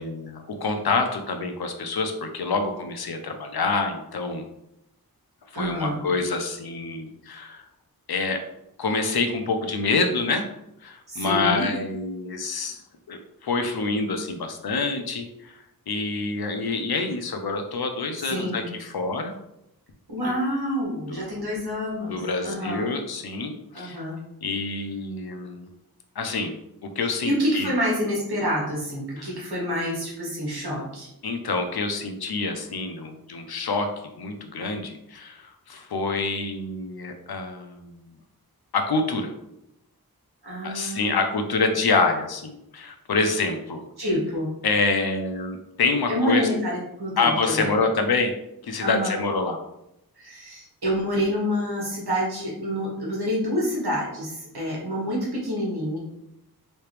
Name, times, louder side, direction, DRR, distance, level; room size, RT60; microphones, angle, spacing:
voice 1, 0.0-4.4 5.5-7.7 8.1-8.4 8.8-10.4 10.8-12.8 13.1-19.3 20.2-20.3 21.1-21.3 22.0-24.0 24.4-25.7 26.2-27.7 29.2-29.3 31.2-38.1 38.7-39.3 40.6-43.8 44.6-46.5 47.2-48.3 48.6-49.6, left 3 dB, 80° left, 6 dB, 0.6 m, -27 dB
voice 2, 5.5-6.0 11.1-11.6 18.2-18.7 20.1-22.9 23.7-24.2 27.2-31.1 40.4-41.2 44.0-44.5 46.1-47.7 48.8-49.2 50.2-56.0, equal, 85° right, -4 dB, 1.4 m, -27 dB
3.2 x 2.9 x 3.2 m, 0.82 s
wide cardioid pair, 45°, 38 cm